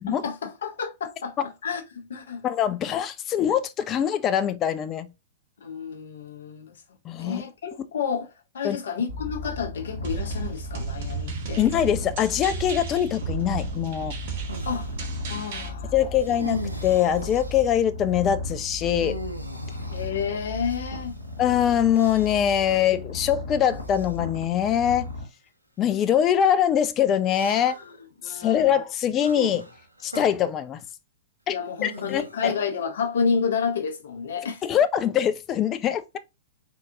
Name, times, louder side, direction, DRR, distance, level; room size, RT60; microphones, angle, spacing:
voice 1, 0.1-2.4 5.6-6.8 7.2-11.6 14.7-14.9 15.3-16.0 19.9-21.2 27.8-28.8 31.5-34.7, left 6 dB, 60° left, 0.7 m, -30 dB
voice 2, 2.4-5.1 7.1-7.4 8.6-8.8 11.6-14.1 15.9-19.2 21.4-25.1 25.8-27.8 28.2-29.7 30.0-30.8 31.5-31.6 31.8-32.5 34.6-36.2, left 9 dB, 25° left, 0.3 m, -23 dB
Purr, 9.1-25.2, left 2 dB, 85° left, 1.1 m, -36 dB
sound 1, 10.0-15.7, right 7 dB, 45° right, 0.8 m, -34 dB
sound 2, 14.5-15.0 16.2-17.7 18.8-21.2 21.9-22.6 23.7-24.2 25.0-25.1 27.3-28.0 29.2-30.3 31.8-32.7, right 1 dB, 85° right, 0.6 m, -39 dB
3.7 x 2.5 x 2.6 m
figure-of-eight pair, 105°, 0 cm